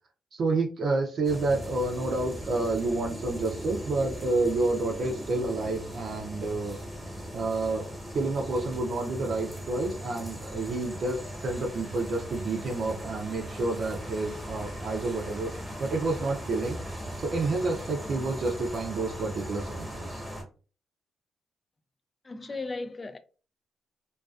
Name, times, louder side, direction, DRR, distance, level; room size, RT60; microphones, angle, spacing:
voice 1, 0.3-6.8 7.3-7.8 8.1-15.5 15.8-16.8 17.2-20.2, right 2 dB, 60° right, 0.5 m, -29 dB
sound 1, 1.2-20.4, equal, ahead, 1.0 m, -39 dB
voice 2, 22.3-23.2, left 3 dB, 30° left, 0.3 m, -36 dB
2.3 x 2.3 x 2.3 m
cardioid pair, 65°, 0 cm